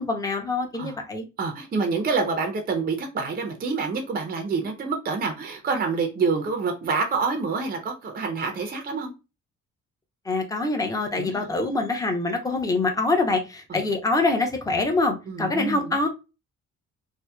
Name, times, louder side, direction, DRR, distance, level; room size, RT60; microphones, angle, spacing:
voice 1, 0.0-1.3 10.3-16.1, left 3 dB, 10° left, 0.6 m, -25 dB
voice 2, 1.4-9.1 11.1-11.5 13.7-13.8 15.3-16.0, right 4 dB, 30° right, 0.5 m, -27 dB
2.7 x 2.0 x 2.2 m
cardioid pair, 90°, 30 cm